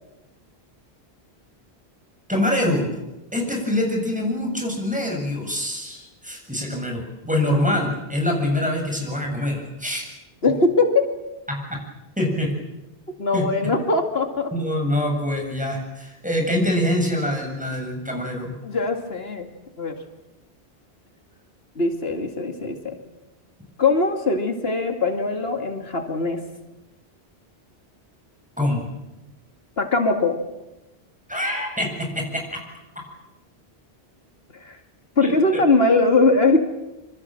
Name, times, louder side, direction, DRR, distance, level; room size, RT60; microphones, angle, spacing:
voice 1, 2.3-2.9 3.3-10.0 11.5-11.8 12.2-12.5 13.3-13.4 14.5-18.6 28.6-28.9 31.3-32.6 35.2-35.6, left 1 dB, 5° right, 1 dB, 7.4 m, -25 dB
voice 2, 10.4-11.1 13.2-14.5 18.6-19.5 19.8-20.0 21.8-23.0 23.8-26.4 29.8-30.4 34.5-34.8 35.2-36.6, left 3 dB, 75° left, 5 dB, 2.5 m, -21 dB
26.5 x 26.0 x 7.7 m, 1.0 s
omnidirectional pair, 1.0 m